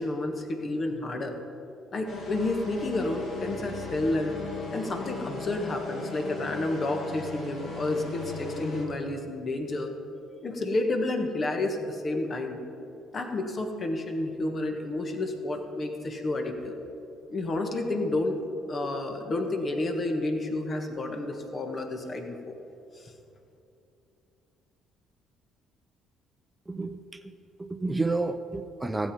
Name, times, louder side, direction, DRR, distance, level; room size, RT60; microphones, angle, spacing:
voice 1, 0.0-1.4 1.9-4.4 4.7-9.9 10.4-12.6 13.1-16.8 17.3-18.4 18.7-22.5 22.9-23.1, left 2 dB, 40° left, 4 dB, 1.5 m, -30 dB
sound 1, 2.1-8.8, left 3 dB, 60° left, 2.2 m, -37 dB
voice 2, 26.7-27.3 27.6-29.1, right 3 dB, 15° right, 9 dB, 0.6 m, -30 dB
15.5 x 7.4 x 5.1 m, 2.7 s
hypercardioid pair, 50°, 0 cm